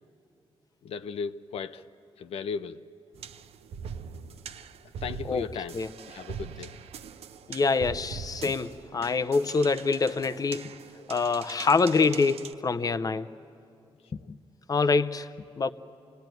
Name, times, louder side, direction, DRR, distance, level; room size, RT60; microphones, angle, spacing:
voice 1, 0.8-1.8 2.2-2.8 5.0-5.8 6.1-6.7 14.2-14.3, left 6 dB, 75° left, 9 dB, 0.6 m, -36 dB
sound 1, 3.1-12.5, right 7 dB, 80° right, 0.7 m, -42 dB
voice 2, 7.5-10.7 11.1-13.3 14.7-15.3 15.6-15.7, left 4 dB, 35° left, 11 dB, 0.7 m, -25 dB
28.0 x 18.5 x 9.2 m, 2.6 s
cardioid pair, 85°, 10 cm